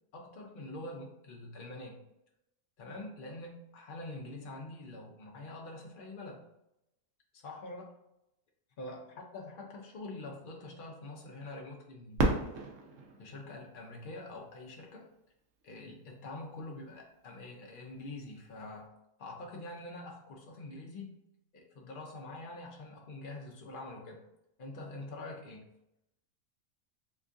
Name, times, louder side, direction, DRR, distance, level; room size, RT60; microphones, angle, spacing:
voice 1, 0.1-2.0 2.8-6.4 7.3-7.9 8.8-9.0 9.3-12.4 13.2-15.1 15.6-18.9 19.2-21.1 21.5-24.2 24.6-25.7, left 2 dB, 75° left, 0 dB, 0.4 m, -45 dB
Fireworks, 12.2-14.9 15.6-15.7 16.4-16.8 18.7-18.9, right 2 dB, 60° right, 0.8 m, -34 dB
2.9 x 2.5 x 3.5 m, 0.83 s
omnidirectional pair, 1.6 m